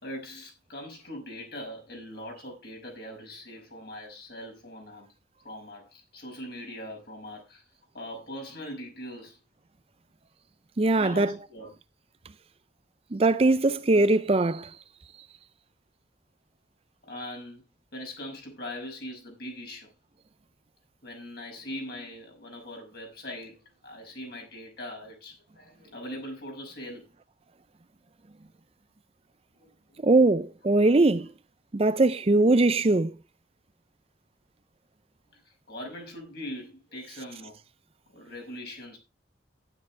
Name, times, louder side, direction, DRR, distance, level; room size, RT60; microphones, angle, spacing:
voice 1, 0.0-5.1 5.4-7.7 7.9-9.4 11.0-11.7 13.9-14.1 17.0-17.6 17.9-19.9 21.0-27.1 29.6-30.0 35.3-37.6 38.1-39.0, left 1 dB, 55° left, 5.9 m, -41 dB
voice 2, 10.8-11.3 13.1-14.7 30.0-31.3 31.7-33.1, right 2 dB, 30° right, 0.5 m, -21 dB
12.0 x 10.5 x 3.4 m
head